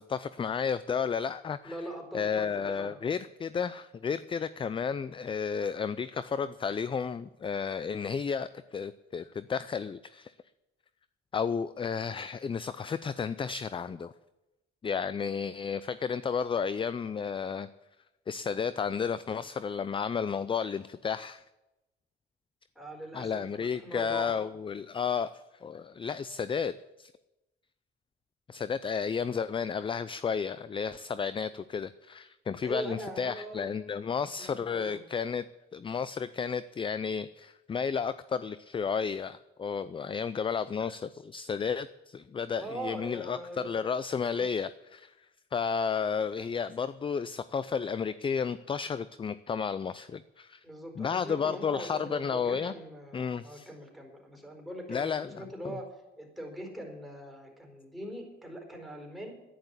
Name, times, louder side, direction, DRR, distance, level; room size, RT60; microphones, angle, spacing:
voice 1, 0.0-1.8 2.1-10.3 11.3-14.1 14.8-17.7 18.3-21.4 23.1-27.1 28.5-35.5 35.7-50.6 51.0-52.7 53.1-53.7 54.9-55.7, left 6 dB, 25° left, 15 dB, 0.4 m, -32 dB
voice 2, 1.6-3.0 22.7-24.3 32.6-33.7 34.4-35.0 42.6-43.8 44.3-44.4 50.6-59.3, right 1 dB, ahead, 1 dB, 4.4 m, -42 dB
10.5 x 10.5 x 8.2 m, 1.0 s
cardioid pair, 90°, 20 cm